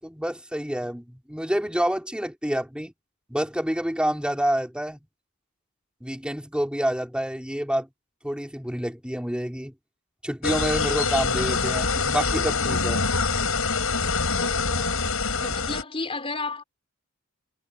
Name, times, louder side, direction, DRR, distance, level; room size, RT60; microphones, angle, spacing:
voice 1, 0.0-2.9 3.3-5.0 6.0-7.9 8.2-9.7 10.2-13.0, equal, 5° right, 5.2 m, -28 dB
sound 1, 10.4-15.8, left 4 dB, 75° left, 6.9 m, -25 dB
voice 2, 14.4-15.0 15.4-16.6, left 3 dB, 25° left, 4.6 m, -33 dB
head